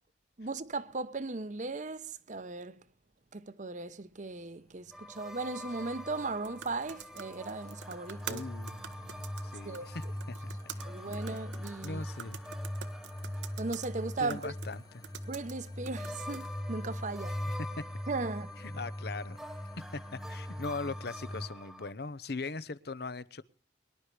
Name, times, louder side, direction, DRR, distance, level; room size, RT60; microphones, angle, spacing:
voice 1, 0.4-2.8 3.3-8.5 9.6-9.9 10.8-12.0 13.6-14.5 15.3-17.4 18.1-18.5, right 3 dB, 45° right, 0.8 m, -37 dB
sound 1, 4.9-15.7 16.0-21.9, left 1 dB, ahead, 0.8 m, -48 dB
sound 2, 5.2-21.5, left 1 dB, 20° left, 1.0 m, -41 dB
sound 3, 6.0-16.6, right 8 dB, 85° right, 1.1 m, -48 dB
voice 2, 8.3-10.8 11.3-11.4 11.8-12.4 14.2-15.0 17.3-17.8 18.6-19.4 19.9-23.4, left 3 dB, 60° left, 0.8 m, -40 dB
23.5 x 11.5 x 3.2 m
head